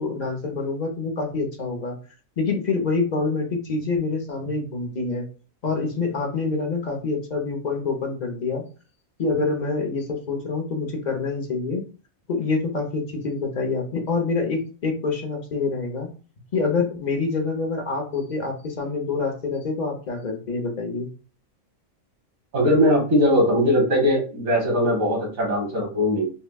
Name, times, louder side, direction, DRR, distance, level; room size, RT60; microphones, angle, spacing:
voice 1, 0.0-2.0 2.4-5.2 5.6-8.6 9.2-11.8 12.3-16.1 16.5-21.1, left 3 dB, 40° left, 2 dB, 0.7 m, -26 dB
voice 2, 22.5-26.3, equal, 85° right, -2 dB, 1.8 m, -20 dB
5.2 x 2.2 x 2.3 m, 0.37 s
omnidirectional pair, 1.4 m